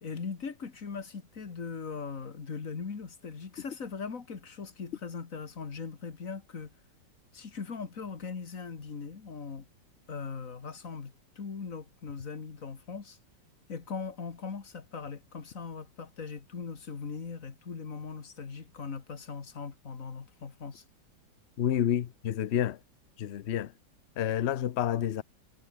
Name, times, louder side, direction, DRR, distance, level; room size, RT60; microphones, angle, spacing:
voice 1, 0.0-6.7 7.3-9.7 10.1-13.2 13.7-20.8, left 5 dB, 45° left, 2.3 m, -40 dB
voice 2, 21.6-22.8 23.2-23.7 24.2-25.2, left 10 dB, 65° left, 0.6 m, -29 dB
omnidirectional pair, 2.0 m